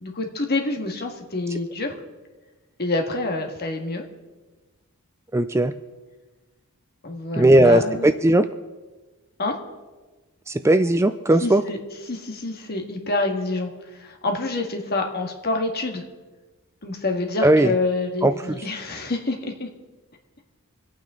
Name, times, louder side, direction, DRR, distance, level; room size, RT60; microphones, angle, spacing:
voice 1, 0.0-1.9 2.8-4.1 7.0-8.1 9.4-9.6 11.4-11.8 12.0-16.0 16.8-19.7, left 2 dB, 45° left, 2 dB, 1.9 m, -27 dB
voice 2, 5.3-5.7 7.4-8.5 10.5-11.6 17.4-17.7 18.2-18.3, right 1 dB, 10° right, 11 dB, 0.4 m, -17 dB
26.5 x 9.1 x 3.8 m, 1.3 s
head